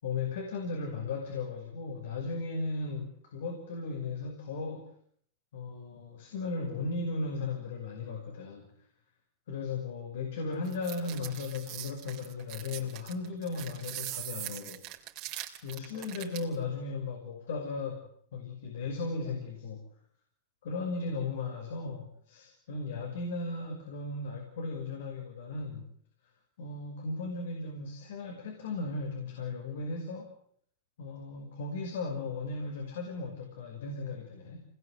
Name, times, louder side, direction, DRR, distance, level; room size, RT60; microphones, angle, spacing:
voice 1, 0.0-4.9 5.5-8.7 9.5-14.8 15.6-18.1 18.3-19.9 20.6-25.9 26.6-30.3 31.0-34.6, left 3 dB, 75° left, 2 dB, 5.8 m, -36 dB
sound 1, 10.7-16.6, right 15 dB, 50° right, 3.7 m, -42 dB
26.5 x 20.5 x 8.0 m, 0.65 s
hypercardioid pair, 120°, 0 cm